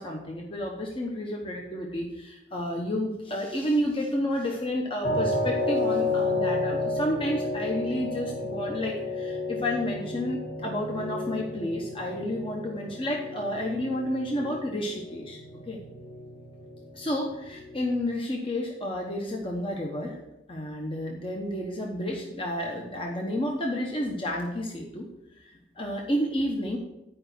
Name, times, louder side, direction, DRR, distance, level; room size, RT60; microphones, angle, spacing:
voice 1, 0.0-15.4 15.7-15.8 16.9-20.2 20.5-25.1 25.4-26.8, left 1 dB, 30° left, 0 dB, 1.0 m, -31 dB
sound 1, 5.0-18.0, left 2 dB, 75° left, 2.2 m, -32 dB
10.5 x 5.0 x 6.0 m, 0.93 s
head